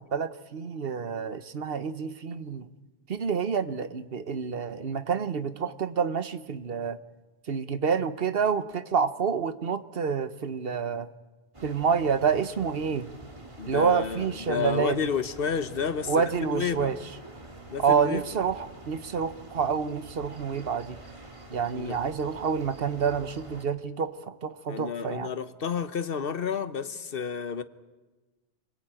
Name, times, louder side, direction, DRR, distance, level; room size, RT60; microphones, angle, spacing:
voice 1, 0.0-2.7 3.1-7.0 7.5-11.1 11.6-13.1 13.7-15.0 16.1-17.0 17.8-21.0 21.5-25.3, right 6 dB, 65° right, 1.2 m, -28 dB
sound 1, 11.5-23.7, right 2 dB, 30° right, 2.1 m, -46 dB
voice 2, 13.6-17.0 17.7-18.3 21.7-22.0 24.7-27.6, left 6 dB, 60° left, 1.2 m, -31 dB
27.0 x 20.5 x 8.9 m
omnidirectional pair, 1.1 m